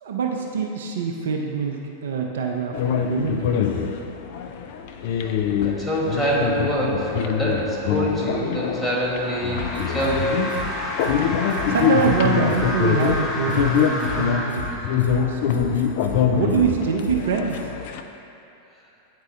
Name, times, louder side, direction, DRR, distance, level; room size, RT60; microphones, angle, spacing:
voice 1, 0.0-3.6 11.7-15.7 16.3-17.6, right 6 dB, 60° right, 1 dB, 0.4 m, -25 dB
sound 1, 2.7-18.0, left 8 dB, 50° left, 0.4 m, -24 dB
voice 2, 5.5-10.5, right 1 dB, ahead, -6 dB, 1.6 m, -25 dB
sound 2, 8.5-15.5, left 1 dB, 25° left, 1.1 m, -31 dB
sound 3, 9.6-10.2 10.5-10.6 11.0-11.1 11.5-12.1 12.5-12.6 13.0-13.2 13.5-14.2 14.5-14.6 15.0-15.1 15.5-16.2 16.5-16.6 17.0-17.2 17.5-17.6, left 2 dB, 80° right, 0.8 m, -34 dB
9.1 x 4.4 x 3.2 m, 2.7 s
figure-of-eight pair, 90°, 0 cm